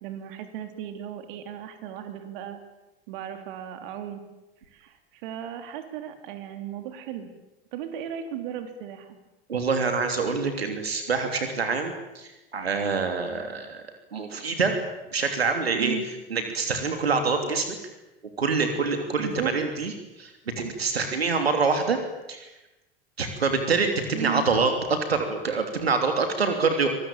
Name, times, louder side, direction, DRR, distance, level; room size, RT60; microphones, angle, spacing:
voice 1, 0.0-2.6 3.1-4.2 4.7-4.9 5.2-7.3 7.7-9.2 15.8-16.1 19.2-19.5 24.1-24.4, right 9 dB, 60° right, 8 dB, 3.6 m, -35 dB
voice 2, 9.5-13.8 14.1-14.7 15.1-16.0 16.3-17.7 18.4-19.9 20.2-22.0 22.3-22.5 23.2-26.9, right 4 dB, 85° right, 6 dB, 3.1 m, -25 dB
25.0 x 21.0 x 9.0 m, 1.0 s
figure-of-eight pair, 85°, 30 cm